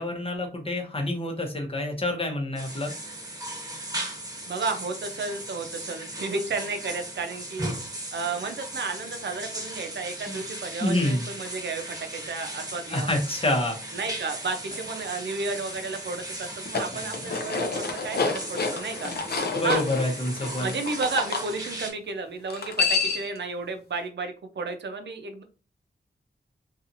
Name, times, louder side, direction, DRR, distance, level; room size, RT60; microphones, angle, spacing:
voice 1, 0.0-2.9 10.3-10.4 10.8-11.3 12.9-13.8 16.9-17.4 19.1-19.2 19.5-20.7, left 1 dB, 30° left, 2 dB, 0.8 m, -27 dB
sound 1, 2.6-21.9, right 1 dB, 20° right, 1.2 m, -37 dB
voice 2, 4.5-7.7 8.1-13.2 13.9-19.1 19.6-19.8 20.6-25.4, right 4 dB, 70° right, 6 dB, 0.5 m, -32 dB
sound 2, 16.5-21.5 22.5-23.4, left 4 dB, 60° left, 0.6 m, -29 dB
2.7 x 2.4 x 2.6 m, 0.34 s
wide cardioid pair, 75°, 19 cm